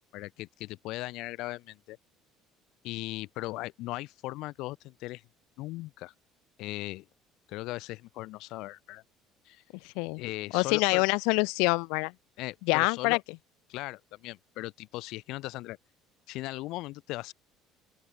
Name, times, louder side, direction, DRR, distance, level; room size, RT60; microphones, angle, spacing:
voice 1, 0.1-2.0 2.8-5.2 5.6-6.1 6.6-7.1 7.5-9.0 9.5-9.6 10.2-11.1 12.4-13.2 13.7-15.8 16.3-17.3, left 19 dB, 65° left, 2.0 m, -38 dB
voice 2, 9.8-10.2 10.5-12.1 12.7-13.2, left 32 dB, 90° left, 1.2 m, -26 dB
open air
cardioid pair, 155°, 0 cm